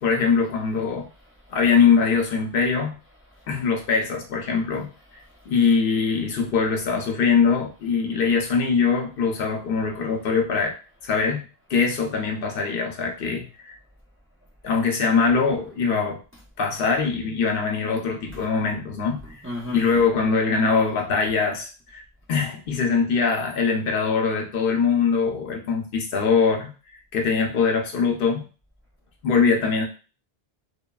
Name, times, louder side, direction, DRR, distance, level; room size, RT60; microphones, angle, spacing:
voice 1, 0.0-1.1 1.5-3.0 3.5-10.7 11.0-11.4 11.7-13.8 14.6-16.2 16.6-19.2 19.7-22.0 22.3-26.7 27.1-28.5 29.2-29.8, left 5 dB, 65° left, 0.7 m, -22 dB
voice 2, 19.2-20.0, equal, 20° right, 0.3 m, -35 dB
3.0 x 2.2 x 2.2 m
omnidirectional pair, 1.0 m